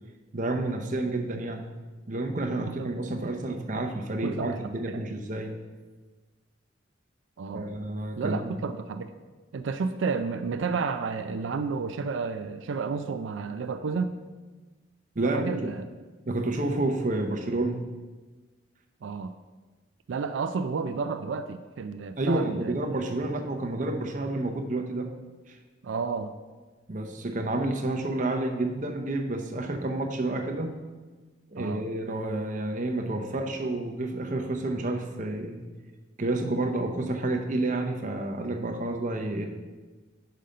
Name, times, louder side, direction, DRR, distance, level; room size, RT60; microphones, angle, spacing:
voice 1, 0.3-1.7 2.1-5.5 7.5-8.6 15.2-15.7 16.3-17.8 22.2-25.1 25.5-25.6 26.9-30.7 31.5-35.6 36.2-39.4, right 2 dB, 40° right, 3 dB, 0.7 m, -29 dB
voice 2, 4.2-4.6 4.9-5.1 7.4-7.7 8.2-9.1 9.5-14.1 15.2-15.8 19.0-19.3 20.1-22.8 25.8-26.3 31.6-31.8, right 5 dB, 80° right, 8 dB, 0.4 m, -31 dB
5.6 x 5.1 x 6.4 m, 1.3 s
head